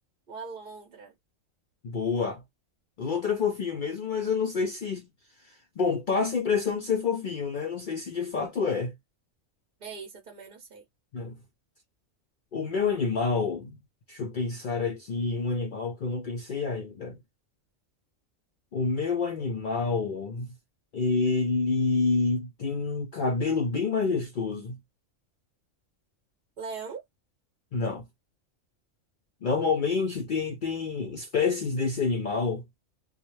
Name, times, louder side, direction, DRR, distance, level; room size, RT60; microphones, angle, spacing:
voice 1, 0.3-1.2 9.8-10.8 26.6-27.0, right 5 dB, 50° right, 0.7 m, -40 dB
voice 2, 1.8-2.4 3.0-5.1 5.5-8.9 11.1-11.3 12.5-13.8 14.1-17.2 18.7-20.5 20.9-24.8 27.7-28.1 29.4-32.6, left 4 dB, 60° left, 0.5 m, -28 dB
2.2 x 2.0 x 3.0 m
omnidirectional pair, 1.4 m